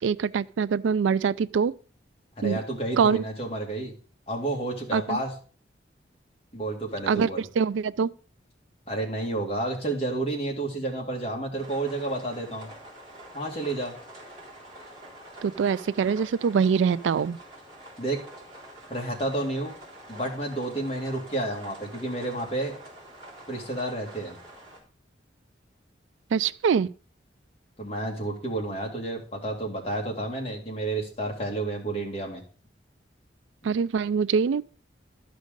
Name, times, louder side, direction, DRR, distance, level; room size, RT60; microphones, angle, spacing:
voice 1, 0.0-1.7 2.4-2.6 3.0-3.2 4.9-5.2 7.1-8.1 15.4-17.4 26.3-26.9 33.6-34.6, right 6 dB, 90° right, 0.3 m, -24 dB
voice 2, 2.4-3.9 4.3-5.3 6.5-7.4 8.9-12.7 13.3-13.9 18.0-18.2 18.9-19.7 20.1-22.8 23.5-24.4 27.8-32.4, right 2 dB, 30° left, 2.4 m, -30 dB
sound 1, 11.6-24.8, right 1 dB, 30° right, 3.5 m, -47 dB
12.5 x 5.2 x 5.2 m
head